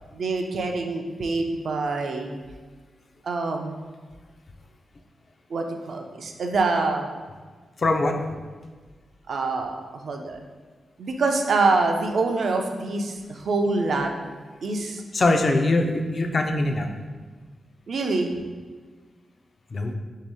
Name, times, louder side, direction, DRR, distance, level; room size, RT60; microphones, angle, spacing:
voice 1, 0.1-2.3 3.2-3.7 5.5-7.1 9.3-10.4 11.0-14.1 14.6-15.0 17.9-18.3, right 3 dB, 60° right, 3 dB, 0.4 m, -25 dB
voice 2, 7.8-8.2 15.1-16.9 19.7-19.9, left 2 dB, 35° left, 4 dB, 0.3 m, -22 dB
3.4 x 2.8 x 4.7 m, 1.4 s
wide cardioid pair, 170°, 0 cm